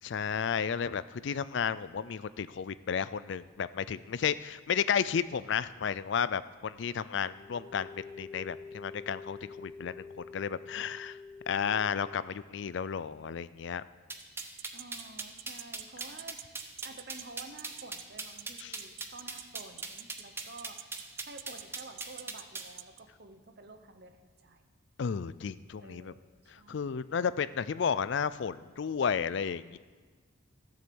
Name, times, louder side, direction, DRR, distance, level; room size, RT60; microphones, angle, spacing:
voice 1, 0.0-11.2 11.5-13.8 18.6-18.7 25.0-26.1 26.7-29.8, left 7 dB, 60° left, 16 dB, 0.4 m, -33 dB
sound 1, 7.2-12.1, left 4 dB, 20° left, 3.5 m, -47 dB
sound 2, 14.1-22.7, right 3 dB, 10° right, 0.7 m, -40 dB
sound 3, 14.2-23.0, right 17 dB, 70° right, 0.3 m, -44 dB
voice 2, 14.7-16.4 16.8-24.6 25.8-27.0, right 3 dB, 50° right, 7 dB, 0.9 m, -51 dB
14.0 x 7.8 x 7.0 m, 1.5 s
head